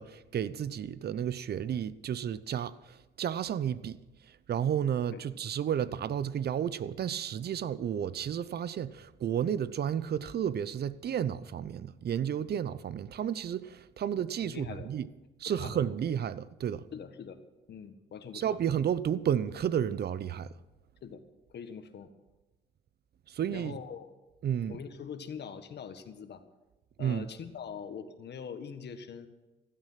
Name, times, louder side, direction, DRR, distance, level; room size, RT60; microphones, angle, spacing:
voice 1, 0.0-4.0 4.3-15.1 15.4-16.8 18.3-20.6 23.3-23.8 24.4-24.8 27.0-27.3, right 9 dB, 55° right, 0.8 m, -32 dB
voice 2, 14.5-14.9 15.4-15.8 16.9-17.4 17.7-18.6 21.0-21.2 21.5-22.1 23.5-24.1 24.7-26.4 27.0-29.3, left 7 dB, 60° left, 1.6 m, -43 dB
16.0 x 12.5 x 5.8 m
cardioid pair, 90°, 20 cm